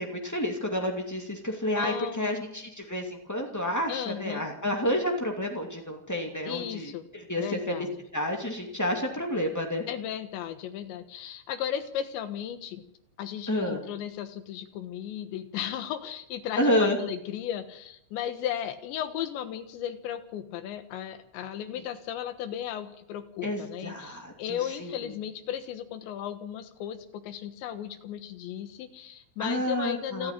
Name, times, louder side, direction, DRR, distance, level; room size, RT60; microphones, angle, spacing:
voice 1, 0.0-7.7 8.1-9.8 13.5-13.8 16.6-17.0 23.4-24.9 29.4-30.3, left 1 dB, 20° left, 2 dB, 0.4 m, -30 dB
voice 2, 1.8-2.5 3.9-4.5 6.4-7.1 7.4-8.0 9.9-12.8 13.2-30.3, left 10 dB, 75° left, 10 dB, 3.6 m, -35 dB
28.0 x 9.8 x 10.0 m, 0.76 s
omnidirectional pair, 5.3 m